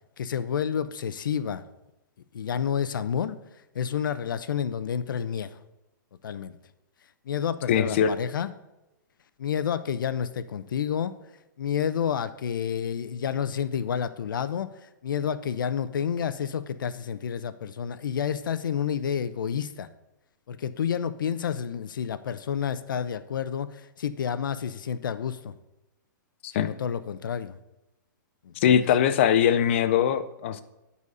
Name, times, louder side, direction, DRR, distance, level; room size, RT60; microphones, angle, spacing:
voice 1, 0.2-1.6 2.3-3.4 3.7-5.6 6.2-6.5 7.3-8.5 9.4-11.1 11.6-14.7 15.0-19.9 20.5-25.5 26.6-27.6 28.4-28.9, left 8 dB, 80° left, 13 dB, 0.6 m, -29 dB
voice 2, 7.7-8.1 26.4-26.7 28.6-30.6, left 9 dB, 35° left, 12 dB, 0.5 m, -22 dB
9.7 x 4.2 x 5.4 m, 0.97 s
hypercardioid pair, 170°, 11 cm